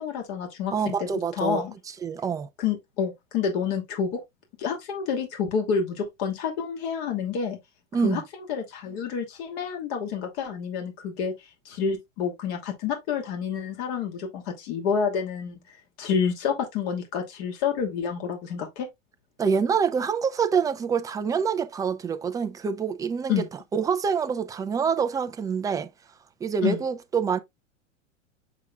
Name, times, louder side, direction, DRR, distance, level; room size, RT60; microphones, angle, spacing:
voice 1, 0.0-1.1 1.4-1.7 2.6-4.2 4.6-7.6 8.0-11.3 11.6-15.6 16.0-18.9 23.3-23.5 26.6-26.8, left 6 dB, 55° left, 2.7 m, -28 dB
voice 2, 0.7-1.6 2.0-2.5 7.9-8.2 19.4-23.4 23.7-25.9 26.4-27.4, right 6 dB, 10° right, 0.4 m, -26 dB
7.2 x 5.8 x 2.3 m
hypercardioid pair, 105°, 39 cm